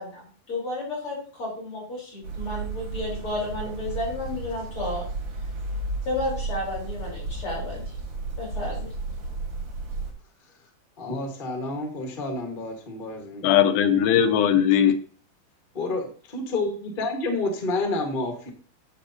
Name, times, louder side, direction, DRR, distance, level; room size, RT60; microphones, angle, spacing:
voice 1, 0.0-5.0 6.0-7.8 8.4-8.9, left 2 dB, 35° left, -5 dB, 4.9 m, -32 dB
sound 1, 2.2-10.1, right 3 dB, 70° right, 3.5 m, -33 dB
voice 2, 11.0-13.5 15.8-16.0 16.3-18.5, left 2 dB, 55° left, 2 dB, 0.5 m, -29 dB
voice 3, 13.4-15.0, left 9 dB, 85° left, 9 dB, 2.5 m, -19 dB
12.0 x 7.7 x 2.8 m, 0.44 s
omnidirectional pair, 4.1 m